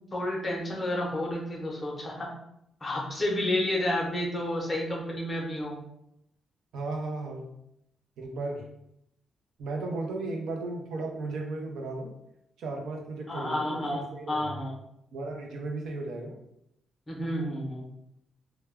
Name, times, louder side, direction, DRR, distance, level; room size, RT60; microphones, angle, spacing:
voice 1, 0.1-2.3 2.8-5.8 13.3-14.7 17.1-17.9, left 1 dB, 20° left, -2 dB, 0.6 m, -30 dB
voice 2, 6.7-7.5 8.2-8.6 9.6-12.1 12.6-14.6 15.1-16.3, right 2 dB, 85° right, 1 dB, 0.5 m, -35 dB
2.1 x 2.1 x 3.4 m, 0.79 s
cardioid pair, 155°, 0 cm